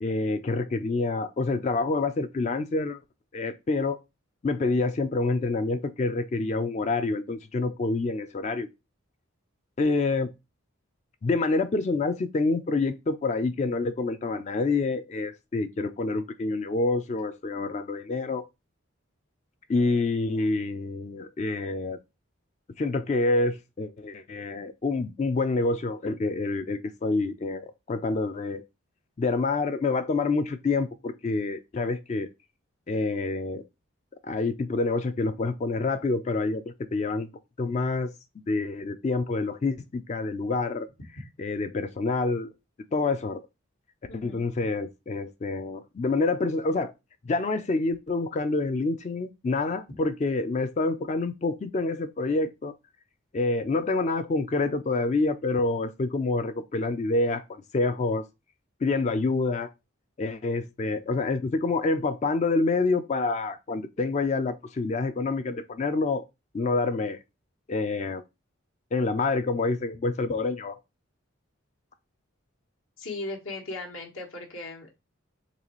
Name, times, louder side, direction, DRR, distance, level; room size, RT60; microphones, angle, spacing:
voice 1, 0.0-3.0 3.3-4.0 4.4-8.7 9.8-10.3 11.2-18.4 19.7-22.0 22.8-28.6 29.2-32.3 32.9-33.6 34.2-36.6 36.9-37.3 37.6-38.1 38.5-40.9 41.4-42.5 42.9-43.4 44.2-46.9 47.2-52.7 53.3-58.2 58.8-59.7 60.2-66.2 66.5-67.2 67.7-68.2 68.9-70.8, left 3 dB, 35° left, 0.3 m, -27 dB
voice 2, 44.1-44.4 73.0-74.9, left 2 dB, 70° left, 1.2 m, -37 dB
4.0 x 3.1 x 3.0 m
head